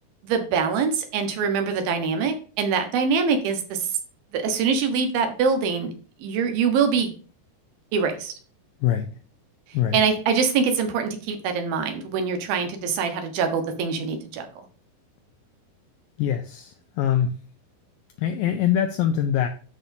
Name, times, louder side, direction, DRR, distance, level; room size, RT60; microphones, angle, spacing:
voice 1, 0.2-3.9 4.3-5.9 6.2-7.1 7.9-8.3 9.9-14.5, right 5 dB, 75° right, 6 dB, 2.9 m, -24 dB
voice 2, 16.2-17.4 18.2-19.5, left 10 dB, 80° left, 5 dB, 2.1 m, -23 dB
12.5 x 4.3 x 2.7 m, 0.39 s
omnidirectional pair, 4.5 m